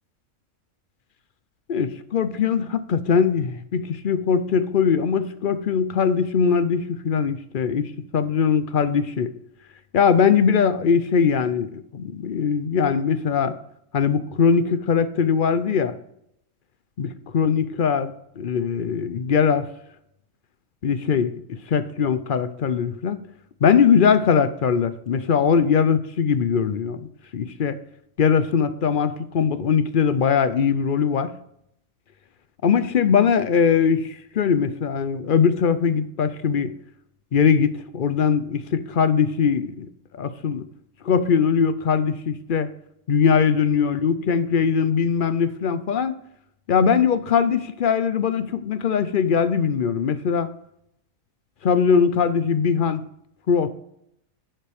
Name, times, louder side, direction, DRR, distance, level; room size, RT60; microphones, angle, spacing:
voice 1, 1.7-9.3 9.9-13.5 13.9-15.9 17.0-19.7 20.8-21.3 21.7-23.2 23.6-27.1 27.3-27.8 28.2-31.3 32.6-36.7 37.3-39.9 40.1-40.6 41.0-42.7 43.1-46.2 46.7-50.5 51.6-53.0 53.5-53.7, left 6 dB, 50° left, 13 dB, 0.6 m, -21 dB
11.0 x 7.6 x 3.5 m, 0.75 s
omnidirectional pair, 1.4 m